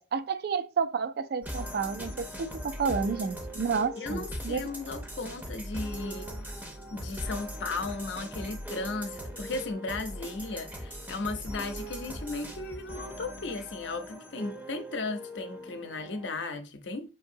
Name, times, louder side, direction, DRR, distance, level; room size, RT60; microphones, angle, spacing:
voice 1, 0.0-4.6, right 5 dB, 55° right, 0.4 m, -30 dB
sound 1, 1.4-16.3, equal, 10° right, 0.6 m, -40 dB
voice 2, 4.0-6.3 6.9-17.1, left 3 dB, 70° left, 0.6 m, -36 dB
5.6 x 2.7 x 2.6 m
head